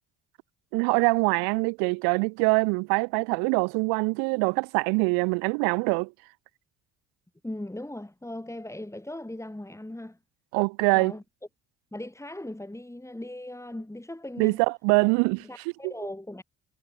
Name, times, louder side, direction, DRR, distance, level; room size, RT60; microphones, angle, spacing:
voice 1, 0.7-6.1 10.5-11.1 14.4-15.4 15.8-15.9, right 34 dB, 80° right, 0.5 m, -24 dB
voice 2, 7.4-10.2 10.9-11.2 11.9-14.6 15.4-16.4, left 1 dB, 10° left, 5.0 m, -38 dB
supercardioid pair, 70°, 37 cm